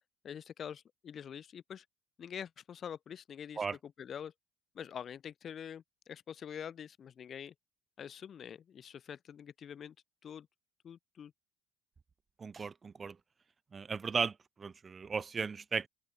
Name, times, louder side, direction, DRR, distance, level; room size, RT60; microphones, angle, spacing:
voice 1, 0.2-1.8 2.2-4.3 4.7-7.5 8.0-9.9 10.2-10.5 10.8-11.3, left 8 dB, 45° left, 6.0 m, -45 dB
voice 2, 12.4-13.2 13.7-15.9, right 5 dB, 30° right, 1.8 m, -36 dB
open air
hypercardioid pair, 65°, 0 cm